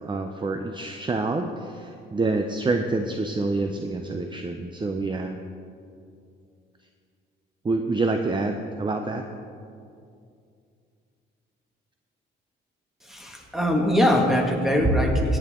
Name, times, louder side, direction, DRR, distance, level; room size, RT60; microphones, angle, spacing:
voice 1, 0.0-5.4 7.6-9.2, right 3 dB, 25° right, 5 dB, 0.7 m, -27 dB
voice 2, 13.0-15.4, equal, ahead, 0 dB, 2.1 m, -22 dB
17.0 x 8.8 x 3.8 m, 2.4 s
cardioid pair, 90°, 20 cm